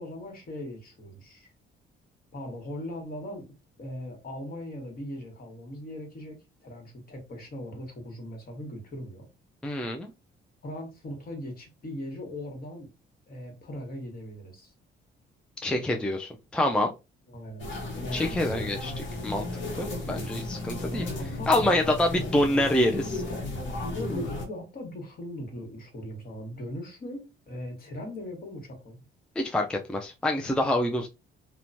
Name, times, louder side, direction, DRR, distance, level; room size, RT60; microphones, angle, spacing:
voice 1, 0.0-1.5 2.3-3.5 3.8-9.3 10.6-12.9 13.3-14.7 17.3-17.7 18.0-18.7 20.8-22.3 23.8-29.0, left 1 dB, 50° left, 1.3 m, -39 dB
voice 2, 9.6-10.1 15.6-16.9 18.1-18.9 19.2-19.5 19.8-21.0 21.5-23.2 29.4-31.1, left 1 dB, 5° left, 0.3 m, -26 dB
sound 1, 17.6-24.5, left 2 dB, 70° left, 0.9 m, -34 dB
2.9 x 2.1 x 2.5 m
cardioid pair, 90°, 20 cm